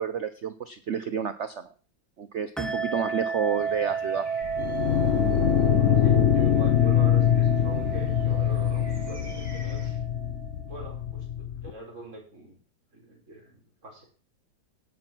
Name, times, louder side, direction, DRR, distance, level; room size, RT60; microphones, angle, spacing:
voice 1, 0.0-1.7 2.2-4.3, right 7 dB, 70° right, 11 dB, 0.6 m, -30 dB
sound 1, 2.6-10.7, right 5 dB, ahead, 1.1 m, -33 dB
sound 2, 3.6-9.9, right 1 dB, 20° right, 3.7 m, -49 dB
sound 3, 4.4-11.7, left 10 dB, 55° left, 0.9 m, -24 dB
voice 2, 6.0-10.0 10.7-12.6 12.9-14.0, right 2 dB, 35° right, -1 dB, 5.0 m, -44 dB
17.5 x 5.9 x 6.1 m, 0.41 s
omnidirectional pair, 2.1 m